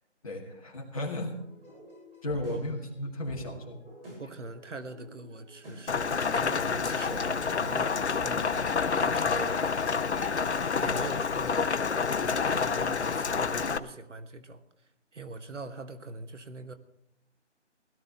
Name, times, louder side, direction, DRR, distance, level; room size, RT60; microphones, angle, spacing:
voice 1, 0.2-1.3 2.2-3.8, left 1 dB, 30° left, 0 dB, 2.1 m, -34 dB
sound 1, 1.3-13.5, equal, 55° right, 7.4 m, -51 dB
voice 2, 2.3-2.6 4.0-9.8 10.7-11.8 12.1-14.6 15.1-16.7, right 2 dB, 80° right, 10 dB, 1.4 m, -42 dB
Rain, 5.9-13.8, left 5 dB, 65° left, 0.8 m, -28 dB
17.0 x 12.0 x 4.0 m, 0.77 s
figure-of-eight pair, 165°, 36 cm